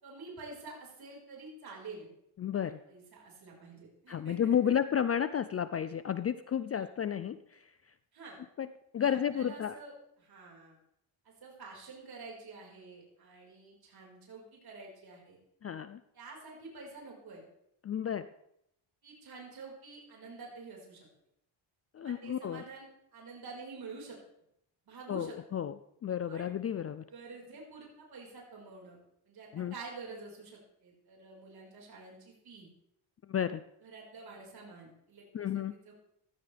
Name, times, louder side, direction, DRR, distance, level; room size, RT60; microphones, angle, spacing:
voice 1, 0.0-2.1 2.6-4.8 6.7-6.8 8.1-8.4 9.1-10.8 11.2-15.4 16.1-17.4 19.0-21.1 22.0-24.2 24.9-25.3 26.3-26.5 27.1-29.0 29.2-32.7 33.8-35.9, right 3 dB, 50° right, -2 dB, 5.0 m, -48 dB
voice 2, 2.4-2.8 4.1-7.9 8.6-8.7 8.9-9.8 15.6-16.0 17.8-18.3 21.9-22.6 25.1-25.8 26.0-27.0 29.5-29.7 33.3-33.6 35.3-35.7, left 9 dB, 30° left, 12 dB, 0.4 m, -32 dB
15.5 x 13.5 x 3.4 m, 0.76 s
cardioid pair, 120°, 49 cm